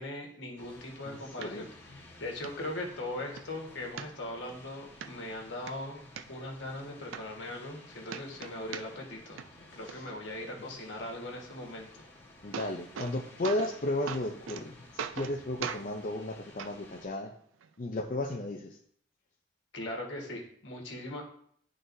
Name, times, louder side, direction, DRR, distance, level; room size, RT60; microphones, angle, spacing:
voice 1, 0.0-1.7 1.9-9.5 9.7-11.9 19.7-21.2, left 1 dB, 70° left, 0 dB, 1.5 m, -40 dB
sound 1, 0.6-17.1, left 2 dB, 15° left, 1.4 m, -54 dB
voice 2, 1.1-1.7 9.8-10.1 12.4-17.3 17.8-18.8, left 1 dB, 45° left, 0 dB, 0.5 m, -34 dB
sound 2, 1.4-1.5 2.0-2.1 2.4-2.5 3.0-3.5 4.0-4.5 5.0-5.1 5.5-6.2 6.8-6.9 7.1-7.8 8.1-9.1 9.4-9.9 12.0-12.1 12.3-13.1 13.4-13.8 14.1-14.6 15.0-15.3 15.6-15.8 16.6-16.7 17.6-17.7, right 7 dB, 90° right, 0.4 m, -39 dB
11.0 x 3.9 x 2.6 m, 0.63 s
head